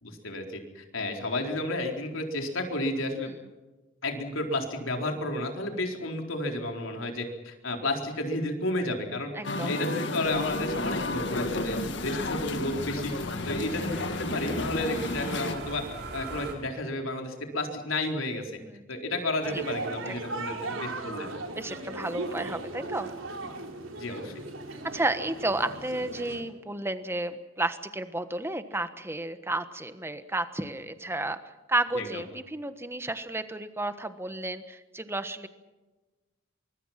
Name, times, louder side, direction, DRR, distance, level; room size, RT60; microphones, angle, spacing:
voice 1, 0.0-3.3 4.0-13.1 13.4-15.8 16.1-18.5 18.9-21.3 24.0-24.3 31.9-32.2, left 1 dB, 80° left, 3 dB, 4.2 m, -32 dB
voice 2, 9.3-9.7 18.6-18.7 19.5-19.6 20.1-20.2 21.6-23.1 24.9-31.4 31.7-35.5, right 2 dB, 10° right, 10 dB, 1.3 m, -32 dB
Musical instrument, 9.4-15.6, left 2 dB, 60° left, 1.8 m, -32 dB
sound 1, 10.2-16.5, right 2 dB, 55° right, 6.2 m, -41 dB
sound 2, 19.4-26.4, right 2 dB, 70° right, 4.1 m, -37 dB
24.0 x 23.5 x 5.9 m, 1.2 s
head